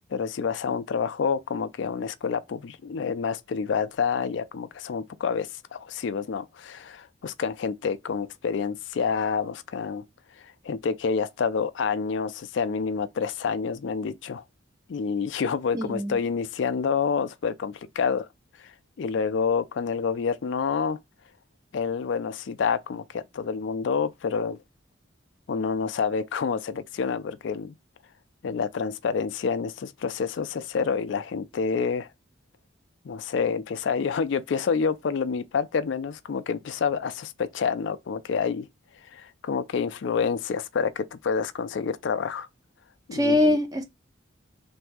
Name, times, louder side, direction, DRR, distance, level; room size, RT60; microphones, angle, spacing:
voice 1, 0.1-10.0 10.6-14.4 14.9-18.3 18.6-21.0 21.7-24.6 25.5-27.7 28.4-32.1 33.0-38.7 39.1-42.5 43.1-43.6, left 6 dB, 70° left, 0.4 m, -28 dB
voice 2, 15.7-16.2 43.1-43.8, left 1 dB, 20° right, 0.6 m, -23 dB
3.4 x 2.6 x 4.6 m
head